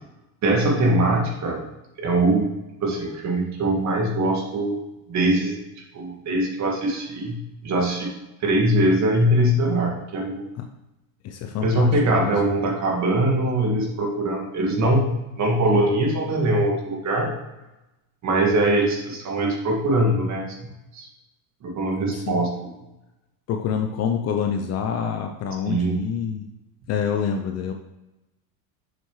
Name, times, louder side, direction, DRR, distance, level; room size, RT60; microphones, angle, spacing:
voice 1, 0.4-1.6 2.0-2.5 2.8-4.8 5.1-5.5 5.9-8.1 8.4-10.5 11.6-15.1 15.4-17.3 18.2-20.7 20.9-21.1 21.6-22.5 25.7-26.0, right 1 dB, 35° right, -1 dB, 2.0 m, -22 dB
voice 2, 11.2-12.3 22.1-22.5 23.5-26.5 26.9-27.7, left 7 dB, 35° left, 5 dB, 0.5 m, -27 dB
6.6 x 6.3 x 3.1 m, 0.96 s
supercardioid pair, 110°, 46 cm